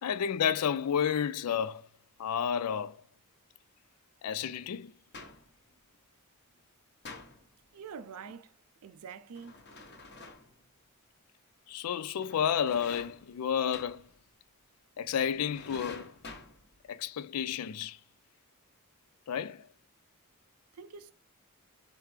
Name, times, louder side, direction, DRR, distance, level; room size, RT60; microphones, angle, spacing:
voice 1, 0.0-1.9 2.2-3.0 4.2-4.9 11.7-14.1 15.0-16.1 16.9-18.0 19.3-19.7, left 8 dB, 85° left, 0.4 m, -31 dB
sound 1, 5.1-5.6 7.0-7.6 9.3-10.6 12.2-13.4 13.7-14.2 15.2-16.9, left 3 dB, 50° left, 1.0 m, -48 dB
voice 2, 7.7-8.6 8.8-9.6 20.7-21.1, right 6 dB, 75° right, 0.5 m, -45 dB
4.5 x 3.4 x 3.2 m
head